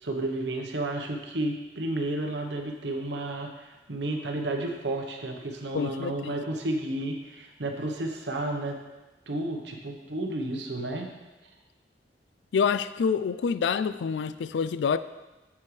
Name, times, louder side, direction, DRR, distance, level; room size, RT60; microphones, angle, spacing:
voice 1, 0.0-8.8 9.3-11.1, right 1 dB, 85° right, 1.0 m, -32 dB
voice 2, 5.7-6.4 12.5-15.0, left 6 dB, 90° left, 0.3 m, -27 dB
8.5 x 7.1 x 3.3 m
head